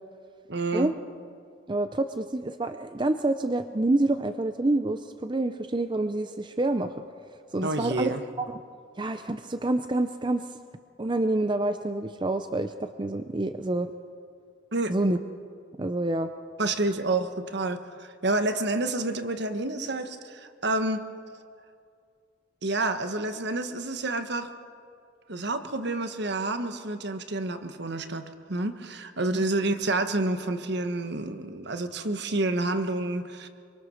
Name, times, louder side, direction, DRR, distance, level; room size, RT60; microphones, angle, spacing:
voice 1, 0.5-0.9 7.6-8.2 14.7-14.9 16.6-21.0 22.6-24.5 25.3-33.5, right 2 dB, 60° right, 8 dB, 1.4 m, -29 dB
voice 2, 1.7-6.9 7.5-8.6 9.0-10.5 11.0-13.9 14.9-15.2 15.8-16.3 29.3-29.4, right 2 dB, 25° right, 9 dB, 0.6 m, -27 dB
25.5 x 24.0 x 6.4 m, 2.3 s
head